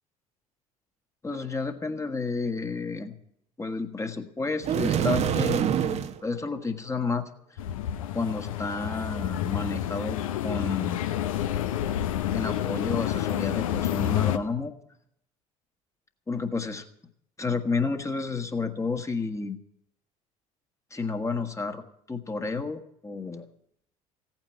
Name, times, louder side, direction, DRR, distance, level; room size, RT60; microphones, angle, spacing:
voice 1, 1.2-3.1 3.6-7.3 8.1-10.2 10.4-11.0 12.3-14.7 16.3-16.8 17.4-19.6 20.9-21.8 22.1-23.4, left 4 dB, 15° left, 6 dB, 1.7 m, -31 dB
sound 1, 4.6-6.2, right 8 dB, 40° right, 0.9 m, -25 dB
sound 2, 7.6-14.4, left 11 dB, 70° left, 0.8 m, -29 dB
16.5 x 9.0 x 8.2 m, 0.70 s
figure-of-eight pair, 60°, 18 cm